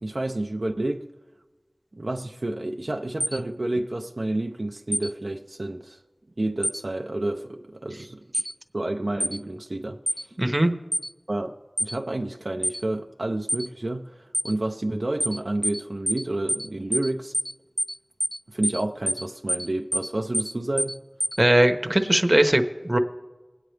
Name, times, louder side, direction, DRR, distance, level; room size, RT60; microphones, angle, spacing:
voice 1, 0.0-1.1 1.9-6.0 6.4-8.2 8.7-10.3 11.3-11.5 11.8-17.3 18.5-21.0, right 1 dB, 70° right, 0.5 m, -30 dB
sound 1, 3.2-3.4 4.9-5.1 6.6-6.8 8.3-8.5 9.2-9.4 10.1-10.2 10.9-11.1 11.8-11.9 12.6-12.8 13.5-13.7 14.3-14.5 15.2-15.4 15.6-15.8 16.1-16.2 16.5-16.7 16.9-17.1 17.3-17.5 17.8-17.9 18.2-18.4 18.6-18.8 19.1-19.2 19.5-19.7 19.9-20.1 20.3-20.5 20.8-20.9 21.2-21.4, equal, ahead, 0.7 m, -26 dB
voice 2, 10.4-10.7 21.4-23.0, right 1 dB, 40° right, 0.9 m, -20 dB
21.0 x 9.1 x 3.3 m
wide cardioid pair, 45°, 0 cm